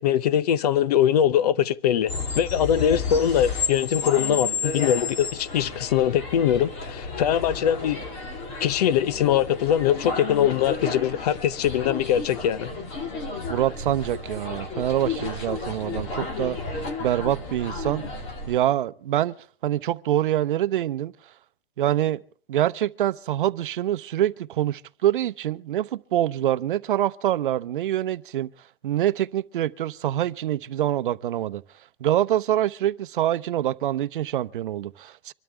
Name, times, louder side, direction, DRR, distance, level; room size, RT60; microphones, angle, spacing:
voice 1, 0.0-8.0 8.6-12.7, left 10 dB, 40° left, 0.8 m, -22 dB
sound 1, 2.1-18.5, left 4 dB, 20° left, 1.9 m, -32 dB
voice 2, 13.5-16.6 17.0-18.0 18.5-19.3 19.6-21.1 21.8-22.2 22.5-28.5 28.8-31.6 32.0-35.3, right 12 dB, 60° right, 0.8 m, -25 dB
25.5 x 12.5 x 3.4 m
hypercardioid pair, 165°, 29 cm